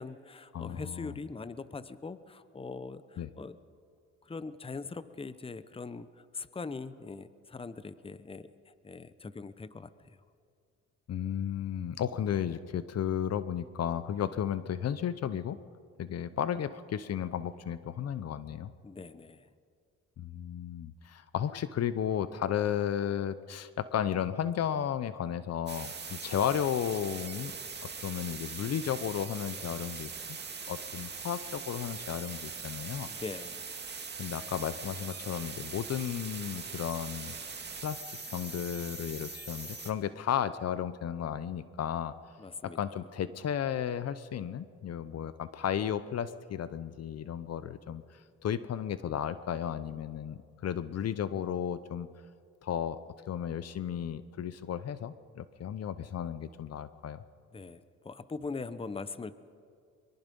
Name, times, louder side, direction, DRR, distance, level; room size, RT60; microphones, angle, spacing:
voice 1, 0.0-3.6 4.2-10.1 18.8-19.5 33.1-33.7 42.4-42.8 57.5-59.3, left 4 dB, 20° left, 14 dB, 0.8 m, -42 dB
voice 2, 0.5-1.1 3.2-3.3 11.1-15.6 16.0-18.7 20.2-27.5 28.0-30.1 30.7-33.1 34.2-37.3 37.8-38.0 38.3-42.1 42.6-48.0 48.4-52.1 52.6-57.2, left 9 dB, 55° left, 14 dB, 0.8 m, -34 dB
sound 1, 25.7-39.9, right 5 dB, 35° right, 2.3 m, -41 dB
23.5 x 22.5 x 5.4 m, 2.2 s
cardioid pair, 90°, 30 cm